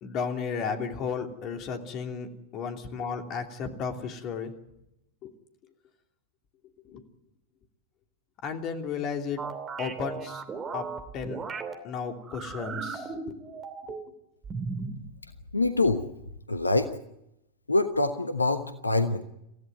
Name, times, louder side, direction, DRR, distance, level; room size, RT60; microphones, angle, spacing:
voice 1, 0.0-4.5 5.2-5.3 6.8-7.0 8.4-9.4 9.8-10.4 10.7-10.9 11.1-11.4 11.8-13.4 13.9-14.0, left 6 dB, 35° left, 5 dB, 3.0 m, -34 dB
sound 1, 9.4-11.7 12.2-14.1 14.4-15.0, right 4 dB, 20° right, 2.8 m, -36 dB
voice 2, 15.5-16.1 16.5-16.9 17.7-19.2, left 2 dB, 80° left, 9 dB, 1.1 m, -25 dB
27.5 x 15.5 x 9.4 m, 0.87 s
figure-of-eight pair, 90°, 0 cm